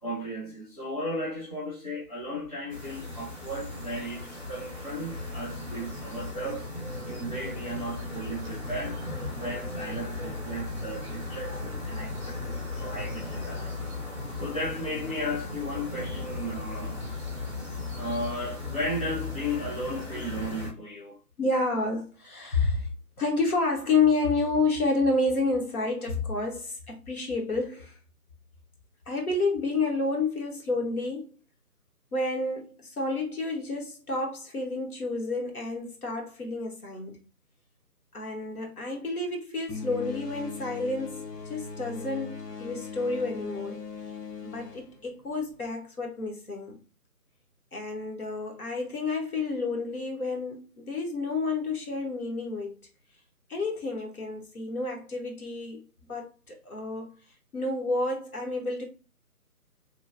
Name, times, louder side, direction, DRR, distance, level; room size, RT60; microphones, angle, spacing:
voice 1, 0.0-6.7 7.0-9.0 9.4-13.9 14.3-17.0 18.0-21.2, equal, 25° left, 0.7 m, -35 dB
sound 1, 2.7-20.7, left 2 dB, 20° right, 0.8 m, -36 dB
voice 2, 21.4-22.9 23.2-27.9 29.1-31.3 32.1-37.2 38.1-43.8 44.4-46.8 47.7-52.7 53.5-55.8 56.1-57.1 57.5-58.8, left 3 dB, 65° left, 1.1 m, -29 dB
sound 2, 39.7-45.7, left 5 dB, 85° left, 0.8 m, -39 dB
3.0 x 2.3 x 2.5 m
figure-of-eight pair, 160°, 47 cm